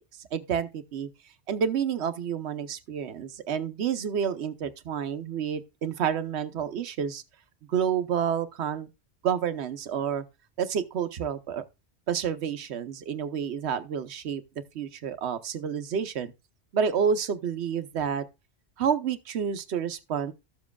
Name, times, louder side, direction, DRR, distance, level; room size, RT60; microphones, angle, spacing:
voice 1, 0.3-1.1 1.5-7.2 7.7-8.9 9.2-10.2 10.6-11.6 12.1-14.4 14.7-16.3 16.7-18.2 18.8-20.3, right 7 dB, 80° right, 1.1 m, -29 dB
13.5 x 7.3 x 2.3 m
omnidirectional pair, 1.1 m